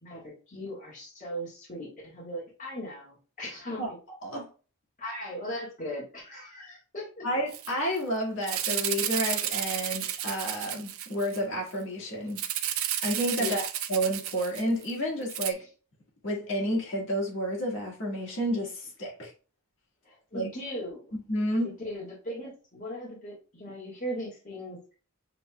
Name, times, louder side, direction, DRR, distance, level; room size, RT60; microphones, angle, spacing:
voice 1, 0.0-4.0 5.0-7.2 13.4-13.7 15.6-15.7 20.0-21.1 21.6-24.8, equal, 35° left, -5 dB, 1.5 m, -38 dB
voice 2, 7.2-12.4 13.0-13.6 13.9-15.6 16.2-19.3 20.3-20.5 21.3-21.7, equal, 60° left, -2 dB, 1.6 m, -30 dB
Rattle (instrument), 7.5-7.7 8.0-8.1 8.4-11.4 12.4-14.9 15.3-15.5, right 11 dB, 65° right, 0.5 m, -32 dB
6.7 x 3.1 x 2.2 m, 0.35 s
head